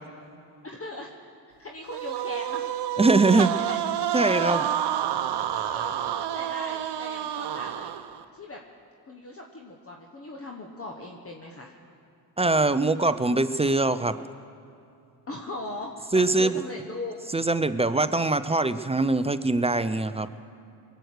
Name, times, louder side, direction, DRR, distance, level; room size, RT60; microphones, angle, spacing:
voice 1, 0.6-1.3 1.6-3.0 3.3-3.8 4.3-4.8 5.5-7.9 8.3-8.6 9.1-11.7 15.3-17.1, left 2 dB, 30° left, 1 dB, 1.3 m, -39 dB
sound 1, 1.9-8.2, right 11 dB, 65° right, 0.8 m, -29 dB
voice 2, 3.0-3.5 4.1-4.6 12.4-14.2 16.1-16.5 17.3-20.3, right 2 dB, 15° right, 12 dB, 0.4 m, -22 dB
21.0 x 8.0 x 6.5 m, 2.6 s
supercardioid pair, 60°, 45 cm